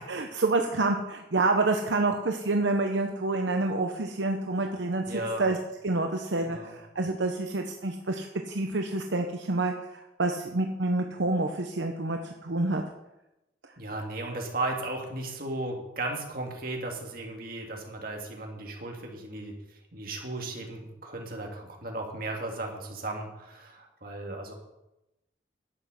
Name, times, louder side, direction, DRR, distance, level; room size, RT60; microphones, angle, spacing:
voice 1, 0.0-5.0 5.4-5.6 5.8-9.7 10.2-12.8, right 2 dB, 75° right, 4 dB, 0.9 m, -28 dB
voice 2, 5.1-5.4 6.4-6.7 13.8-19.5 19.9-24.5, right 2 dB, 50° right, 1 dB, 2.3 m, -35 dB
11.5 x 8.1 x 6.4 m, 0.93 s
head